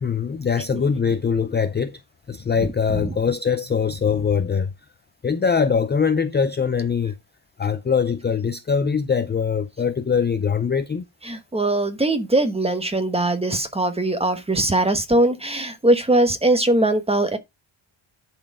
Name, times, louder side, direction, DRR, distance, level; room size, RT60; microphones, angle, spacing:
voice 1, 0.0-2.0 2.3-4.7 5.2-7.1 7.6-11.1, left 6 dB, 20° left, 0.4 m, -22 dB
voice 2, 11.3-17.4, right 1 dB, 10° right, 1.0 m, -21 dB
10.5 x 4.5 x 4.7 m
wide cardioid pair, 180°, 49 cm